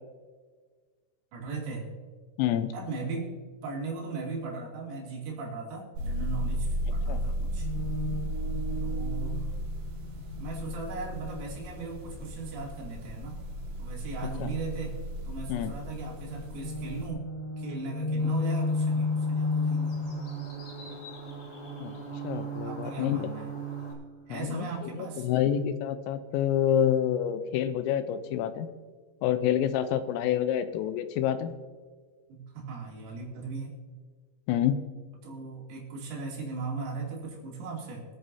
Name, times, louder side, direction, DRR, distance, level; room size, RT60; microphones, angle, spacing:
voice 1, 1.3-1.9 2.7-3.3 3.6-7.7 8.8-9.5 10.4-13.4 13.8-15.0 15.3-17.3 17.6-20.0 22.6-23.5 24.3-25.3 32.3-33.7 35.2-38.1, right 4 dB, 80° right, -2 dB, 5.4 m, -38 dB
voice 2, 2.4-2.7 7.1-7.2 14.4-14.5 15.5-15.7 21.8-21.9 22.2-23.3 24.3-24.7 24.9-28.7 29.2-31.5 34.5-34.8, left 10 dB, 90° left, 11 dB, 3.4 m, -27 dB
sound 1, 5.9-17.1, equal, 65° right, 3.7 m, -35 dB
sound 2, 7.5-11.7 14.8-24.0, left 2 dB, 75° left, 5.1 m, -34 dB
Bird, 18.2-23.9, equal, 35° left, 3.5 m, -48 dB
25.0 x 9.0 x 2.8 m, 1.5 s
omnidirectional pair, 5.9 m